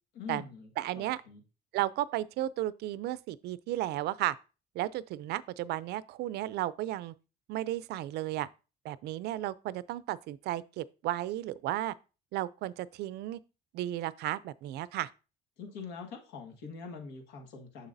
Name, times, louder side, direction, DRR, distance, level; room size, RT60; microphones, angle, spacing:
voice 1, 0.1-1.4 15.6-17.9, left 5 dB, 85° left, 1.5 m, -44 dB
voice 2, 0.8-1.2 1.7-4.4 4.7-7.1 7.5-8.5 8.8-11.9 12.3-13.4 13.7-15.1, right 14 dB, 75° right, 0.4 m, -34 dB
7.1 x 6.4 x 2.6 m
cardioid pair, 110°, 17 cm